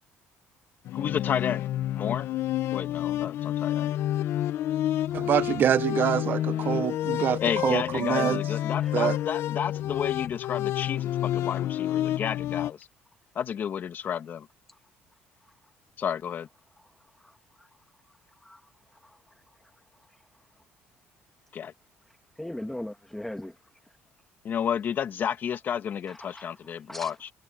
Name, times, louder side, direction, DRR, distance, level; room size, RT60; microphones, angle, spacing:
sound 1, 0.8-12.7, left 12 dB, 65° left, 0.8 m, -29 dB
voice 1, 0.9-1.6 2.0-2.3 2.7-3.9 7.4-12.9 13.3-14.5 16.0-16.5 21.5-21.7 24.4-27.3, left 8 dB, 45° left, 1.5 m, -31 dB
voice 2, 5.1-8.4 8.9-9.2, right 10 dB, 50° right, 0.8 m, -25 dB
voice 3, 22.4-23.5 26.1-26.5 26.9-27.1, left 1 dB, 5° left, 1.7 m, -38 dB
cardioid pair, 120°, 4 cm